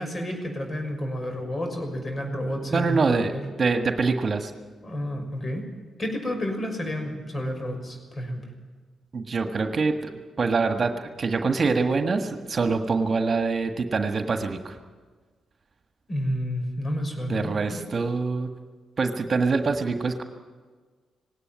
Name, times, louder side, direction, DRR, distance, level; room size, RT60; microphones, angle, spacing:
voice 1, 0.0-3.4 4.8-5.6 6.0-8.4 16.1-17.8, equal, 35° left, 4 dB, 6.2 m, -30 dB
voice 2, 2.7-3.3 3.6-4.5 9.1-14.8 17.3-18.5 19.0-20.2, right 4 dB, 45° right, 6 dB, 1.6 m, -25 dB
19.0 x 17.5 x 9.3 m, 1.4 s
hypercardioid pair, 40°, 0 cm